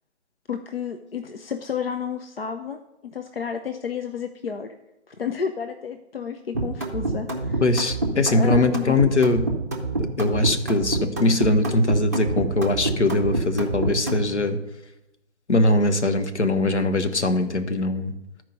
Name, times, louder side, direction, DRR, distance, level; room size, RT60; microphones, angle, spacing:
voice 1, 0.5-4.7 5.1-7.6 8.3-9.0, left 7 dB, 55° left, 7 dB, 0.6 m, -31 dB
sound 1, 6.5-14.3, right 2 dB, 15° right, 0.6 m, -27 dB
voice 2, 7.6-9.4 10.2-14.6 15.5-18.1, left 2 dB, 70° left, 8 dB, 1.1 m, -21 dB
12.0 x 4.6 x 5.3 m, 0.95 s
figure-of-eight pair, 150°, 36 cm